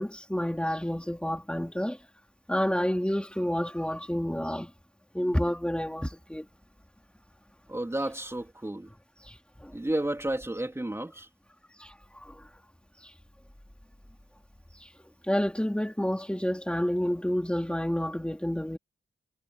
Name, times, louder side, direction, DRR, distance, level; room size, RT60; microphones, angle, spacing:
voice 1, 0.0-2.0 2.5-4.7 5.1-6.4 9.2-9.7 11.8-12.5 13.0-13.1 14.8-14.9 15.2-18.8, equal, 5° left, 3.3 m, -29 dB
voice 2, 7.7-8.9 9.7-11.3, right 1 dB, 15° right, 3.4 m, -32 dB
cardioid pair, 85°, 20 cm